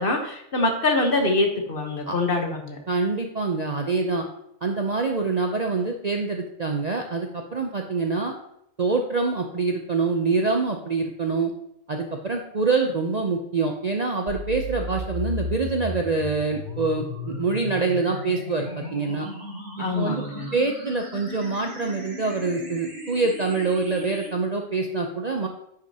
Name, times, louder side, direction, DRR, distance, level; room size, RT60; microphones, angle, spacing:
voice 1, 0.0-2.8 19.8-20.5, left 2 dB, 45° left, 3 dB, 1.2 m, -24 dB
voice 2, 2.9-4.3 4.6-8.3 8.8-11.5 11.9-19.3 20.0-20.2 20.5-25.5, right 4 dB, 45° right, 2 dB, 0.6 m, -25 dB
sound 1, 14.3-24.3, left 1 dB, 60° right, 2.7 m, -35 dB
9.9 x 6.2 x 2.8 m, 0.76 s
omnidirectional pair, 1.4 m